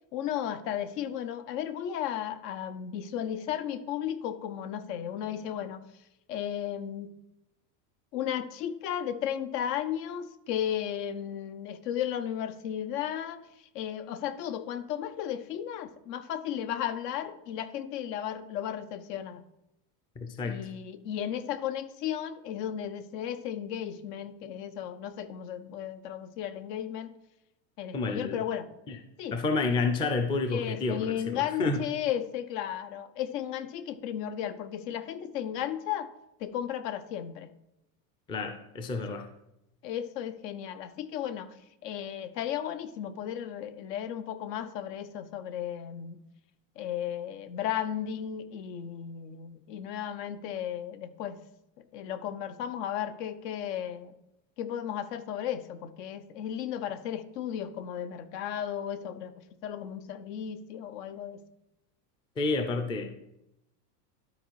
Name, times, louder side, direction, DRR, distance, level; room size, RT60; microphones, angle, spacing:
voice 1, 0.1-5.8 6.3-7.1 8.1-13.4 13.7-19.4 20.4-27.1 27.8-28.7 29.2-29.4 30.5-36.1 36.4-37.5 39.8-41.5 41.8-46.2 46.8-51.4 51.9-54.2 54.6-59.3 59.6-61.4, left 10 dB, 80° left, 11 dB, 1.0 m, -34 dB
voice 2, 20.2-20.7 27.9-28.4 28.9-29.0 29.3-31.8 38.3-39.3 62.4-63.1, left 3 dB, 10° left, 7 dB, 0.3 m, -30 dB
12.0 x 4.1 x 4.6 m, 0.87 s
supercardioid pair, 140°, 47 cm